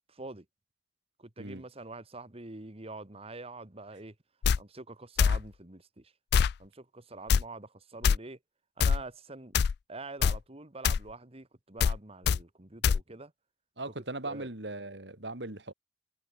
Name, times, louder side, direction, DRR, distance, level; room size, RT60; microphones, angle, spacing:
voice 1, 0.1-0.5 1.2-4.2 4.6-6.1 6.6-8.4 8.8-9.5 9.9-13.3 14.2-14.5, right 3 dB, 35° right, 1.8 m, -45 dB
sound 1, 4.4-4.6 5.2-5.4 6.3-6.5 7.3-7.4 8.0-8.2 8.8-9.0 9.5-9.8 10.2-10.4 10.8-11.0 11.8-12.0 12.3-12.4 12.8-13.0, left 6 dB, 65° left, 0.3 m, -23 dB
voice 2, 13.8-15.7, right 2 dB, 70° right, 3.7 m, -39 dB
head